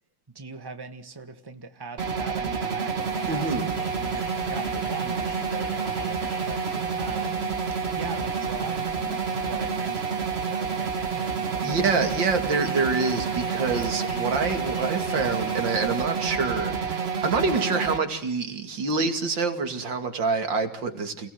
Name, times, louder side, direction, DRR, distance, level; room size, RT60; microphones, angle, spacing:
voice 1, 0.3-7.6 7.9-9.2 9.4-12.1, right 4 dB, 15° right, 8 dB, 1.6 m, -40 dB
sound 1, 2.0-18.0, right 6 dB, 40° right, 1.4 m, -29 dB
sound 2, 3.0-16.1, left 4 dB, 50° left, 2.2 m, -45 dB
voice 2, 3.3-3.7 11.6-21.3, right 4 dB, 90° right, 7 dB, 3.1 m, -26 dB
29.0 x 18.0 x 7.9 m, 0.69 s
omnidirectional pair, 2.0 m